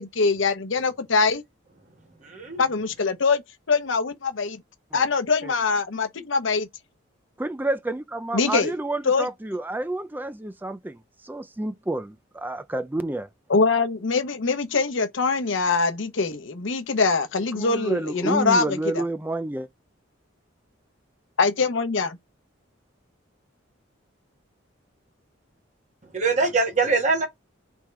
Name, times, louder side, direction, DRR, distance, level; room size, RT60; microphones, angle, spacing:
voice 1, 0.0-1.4 2.6-3.4 3.7-4.6 4.9-6.7 8.3-8.7 9.1-9.3 13.5-18.8 21.4-22.2, left 4 dB, 70° left, 0.8 m, -23 dB
voice 2, 2.2-2.6 26.1-27.3, right 3 dB, 35° right, 1.3 m, -23 dB
voice 3, 7.4-13.3 17.5-19.7, right 2 dB, 10° right, 0.4 m, -29 dB
3.5 x 3.2 x 4.4 m
head